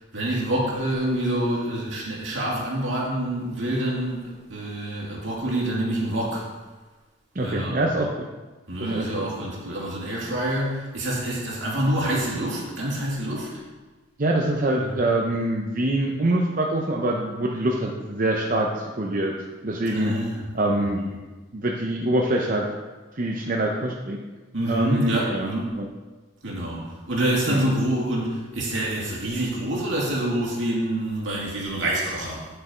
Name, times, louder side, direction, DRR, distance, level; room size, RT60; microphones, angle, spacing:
voice 1, 0.1-6.5 7.4-7.8 8.7-13.5 14.7-15.0 19.9-21.1 24.5-25.7 26.4-32.5, right 1 dB, 80° right, -4 dB, 2.6 m, -27 dB
voice 2, 7.3-8.3 8.8-9.3 14.2-19.3 19.6-20.1 20.5-21.2 21.5-22.6 23.1-24.2 24.7-25.9 27.5-27.7, right 1 dB, 45° right, 0 dB, 0.7 m, -25 dB
9.0 x 6.7 x 4.5 m, 1.3 s
head